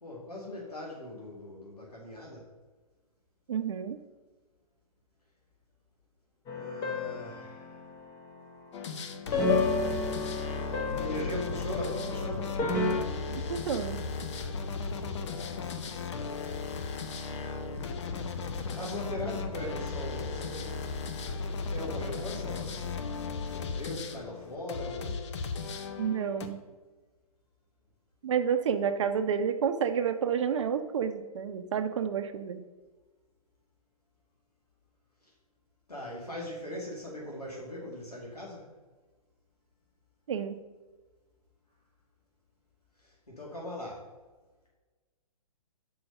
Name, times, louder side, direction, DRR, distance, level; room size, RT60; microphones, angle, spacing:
voice 1, 0.0-2.5 6.5-7.8 11.0-12.6 18.6-20.9 21.7-23.1 23.5-25.2 35.9-38.7 43.0-44.1, left 1 dB, 85° left, -3 dB, 1.9 m, -40 dB
voice 2, 3.5-4.0 13.3-14.0 26.0-26.6 28.2-32.6 40.3-40.6, right 7 dB, 50° right, 9 dB, 0.7 m, -30 dB
sound 1, 6.5-7.9 9.3-13.0, left 3 dB, 20° left, 1.0 m, -31 dB
sound 2, 8.7-26.5, left 4 dB, 50° left, 0.8 m, -36 dB
6.0 x 4.8 x 6.5 m, 1.3 s
figure-of-eight pair, 130°, 19 cm